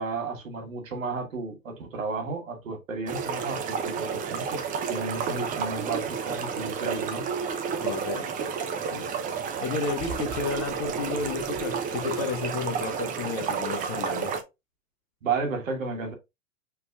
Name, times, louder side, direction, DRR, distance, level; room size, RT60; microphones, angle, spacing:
voice 1, 0.0-4.6 4.9-7.3 15.2-16.1, right 4 dB, 75° right, 1.5 m, -33 dB
sound 1, 3.1-14.4, right 6 dB, 20° right, 0.6 m, -31 dB
voice 2, 7.8-8.3 8.9-9.1 9.6-14.3, left 5 dB, 35° left, 1.2 m, -32 dB
5.8 x 3.3 x 2.4 m
figure-of-eight pair, 100°, 40 cm